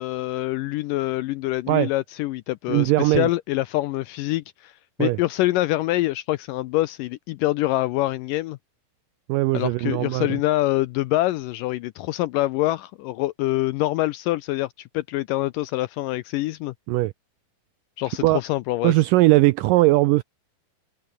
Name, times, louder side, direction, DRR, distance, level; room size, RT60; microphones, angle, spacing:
voice 1, 0.0-8.6 9.5-16.7 18.0-18.9, left 17 dB, 80° left, 2.0 m, -25 dB
voice 2, 2.7-3.3 5.0-5.2 9.3-10.3 16.9-17.1 18.2-18.4 18.8-20.2, right 19 dB, 85° right, 1.9 m, -19 dB
omnidirectional pair, 4.4 m